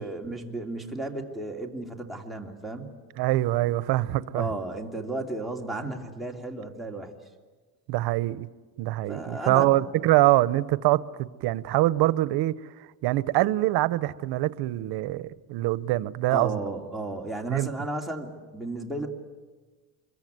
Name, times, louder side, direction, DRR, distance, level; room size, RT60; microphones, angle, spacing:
voice 1, 0.0-2.9 4.3-7.1 9.1-9.7 16.3-19.1, right 2 dB, ahead, 3.0 m, -34 dB
voice 2, 3.2-4.5 7.9-8.5 8.8-12.6 13.0-16.6 17.5-17.7, right 16 dB, 80° right, 0.9 m, -24 dB
25.5 x 22.5 x 9.4 m
cardioid pair, 125°, 38 cm